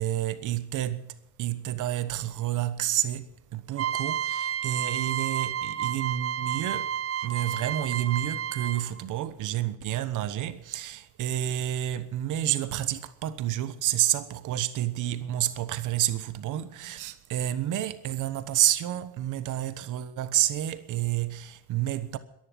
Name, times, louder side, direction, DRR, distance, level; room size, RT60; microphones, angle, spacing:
voice 1, 0.0-22.2, right 12 dB, 85° right, 1.2 m, -29 dB
sound 1, 3.7-9.0, right 9 dB, 50° right, 0.7 m, -31 dB
14.5 x 11.0 x 7.6 m
cardioid pair, 90°, 30 cm